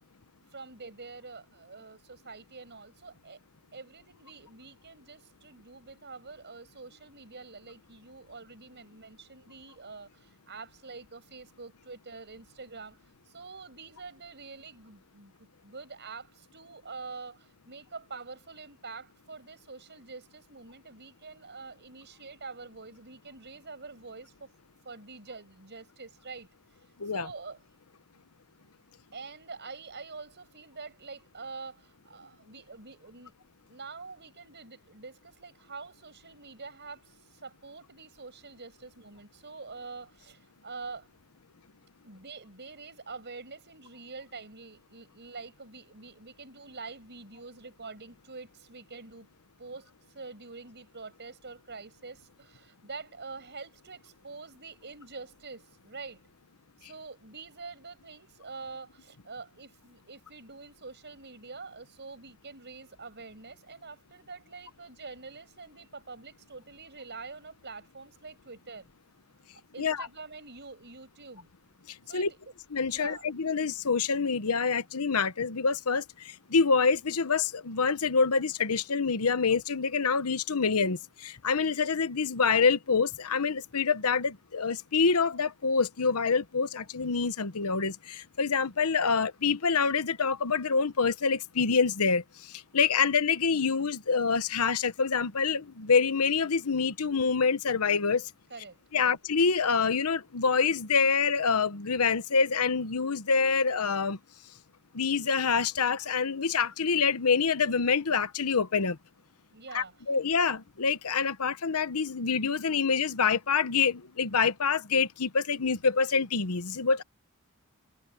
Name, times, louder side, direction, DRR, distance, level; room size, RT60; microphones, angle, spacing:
voice 1, 0.5-3.4 3.7-13.0 13.3-24.5 24.8-26.5 27.1-27.6 29.1-33.4 33.7-41.1 42.0-49.3 49.6-56.2 56.8-68.9 69.7-71.5 72.1-72.3 72.9-73.3 98.5-99.2 109.5-110.0, right 4 dB, 50° right, 7.0 m, -46 dB
voice 2, 72.7-76.0 76.5-92.2 92.7-98.3 98.9-104.2 104.9-109.0 109.7-117.0, left 5 dB, 85° left, 1.0 m, -26 dB
head